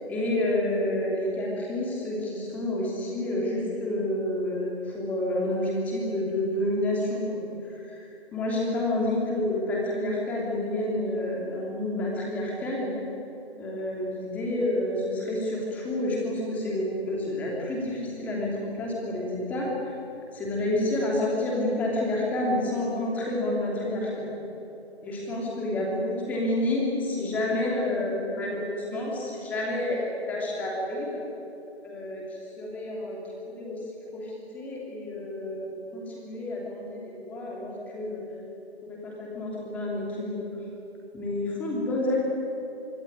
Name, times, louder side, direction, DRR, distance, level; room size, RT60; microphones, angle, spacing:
voice 1, 0.1-7.3 7.6-12.9 13.6-19.9 20.3-24.3 25.0-30.0 30.3-31.2 31.8-32.2 32.6-33.2 33.5-33.8 34.1-38.2 38.8-40.5 41.1-42.2, left 1 dB, 5° left, -3 dB, 3.0 m, -29 dB
24.5 x 24.0 x 9.8 m, 2.9 s
figure-of-eight pair, 165°, 33 cm